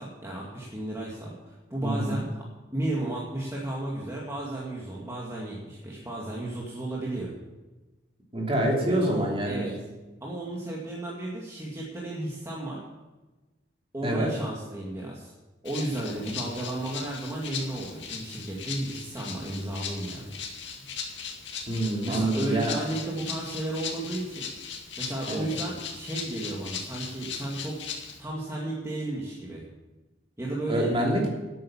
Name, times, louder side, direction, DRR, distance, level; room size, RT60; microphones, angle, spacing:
voice 1, 0.0-2.3 2.7-7.3 8.8-9.7 10.2-12.8 13.9-15.3 15.6-20.4 22.0-24.5 25.0-27.8 28.2-29.6 30.4-30.9, right 1 dB, 15° right, -4 dB, 2.0 m, -33 dB
voice 2, 1.8-2.2 8.3-9.7 14.0-14.3 21.7-22.8 25.3-25.5 30.7-31.3, right 1 dB, 30° right, -1 dB, 3.1 m, -26 dB
Rattle (instrument), 15.6-28.2, left 6 dB, 75° left, 2.1 m, -38 dB
12.0 x 8.8 x 7.2 m, 1.1 s
head